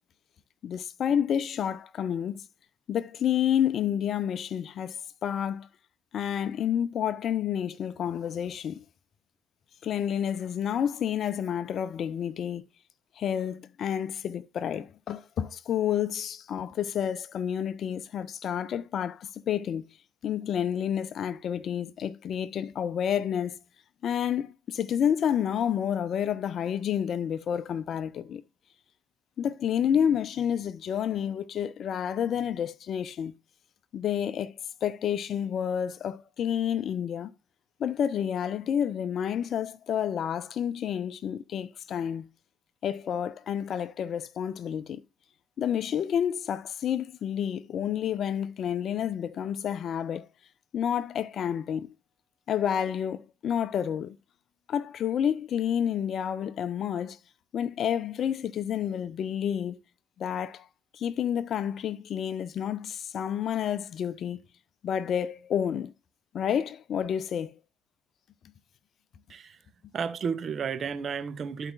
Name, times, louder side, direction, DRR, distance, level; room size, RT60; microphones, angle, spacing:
voice 1, 0.6-2.4 2.9-5.7 6.1-8.8 9.8-12.6 13.2-19.9 20.2-23.6 24.0-28.4 29.4-33.3 33.9-37.3 37.8-42.3 42.8-45.0 45.6-50.3 50.7-51.9 52.5-54.2 54.7-57.2 57.5-59.8 60.2-60.7 60.9-64.4 64.8-65.9 66.3-67.5, left 9 dB, 55° left, 0.5 m, -29 dB
voice 2, 69.3-69.6 69.9-71.7, right 6 dB, 50° right, 1.1 m, -32 dB
13.5 x 4.9 x 2.4 m
hypercardioid pair, 60°, 0 cm